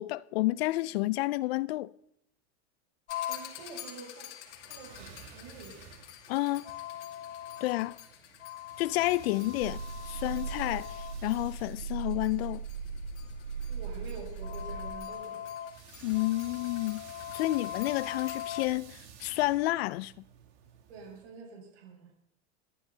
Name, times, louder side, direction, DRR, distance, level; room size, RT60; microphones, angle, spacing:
voice 1, 0.0-1.9 6.3-6.7 7.6-8.0 8.8-12.6 16.0-17.1 17.3-20.1, left 18 dB, 60° left, 0.5 m, -30 dB
sound 1, 3.1-18.7, left 11 dB, 85° left, 2.4 m, -42 dB
voice 2, 3.3-4.3 4.6-5.9 13.7-15.5 20.9-22.1, right 4 dB, 70° right, 6.9 m, -47 dB
sound 2, 4.5-21.2, right 7 dB, 85° right, 2.9 m, -54 dB
sound 3, 9.6-14.9, right 5 dB, 50° right, 1.4 m, -38 dB
29.0 x 10.5 x 2.8 m
supercardioid pair, 180°, 34 cm